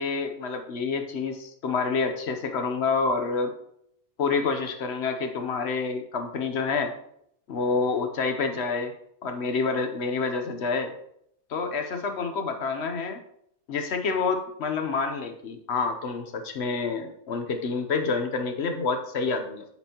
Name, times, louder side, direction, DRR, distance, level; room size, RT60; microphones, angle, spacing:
voice 1, 0.0-3.5 4.2-6.9 7.5-8.9 9.2-10.9 11.5-13.2 13.7-19.6, left 4 dB, 55° left, 6 dB, 0.9 m, -28 dB
8.7 x 6.2 x 2.9 m, 0.72 s
omnidirectional pair, 1.4 m